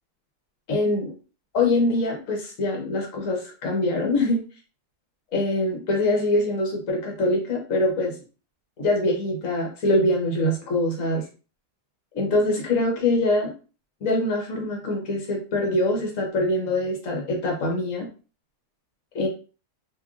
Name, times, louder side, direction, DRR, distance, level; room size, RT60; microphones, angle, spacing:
voice 1, 0.7-1.1 1.5-4.4 5.3-8.1 8.8-11.2 12.1-13.5 14.0-18.1 19.1-19.3, left 2 dB, 55° left, -1 dB, 1.5 m, -24 dB
3.5 x 3.3 x 2.5 m, 0.35 s
omnidirectional pair, 1.7 m